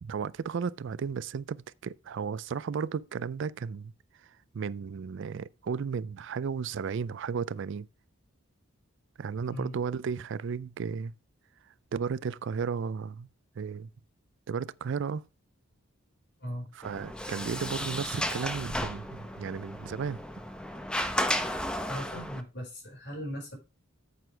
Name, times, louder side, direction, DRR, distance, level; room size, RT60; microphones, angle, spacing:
voice 1, 0.0-3.9 4.2-4.3 4.5-7.9 9.2-11.1 11.9-13.3 13.6-13.9 14.5-15.2 16.7-20.2, right 6 dB, 60° right, 0.4 m, -34 dB
Sliding door, 16.8-22.4, left 1 dB, 5° left, 0.8 m, -34 dB
voice 2, 21.9-23.6, equal, 55° left, 5.0 m, -38 dB
9.2 x 7.8 x 3.3 m
head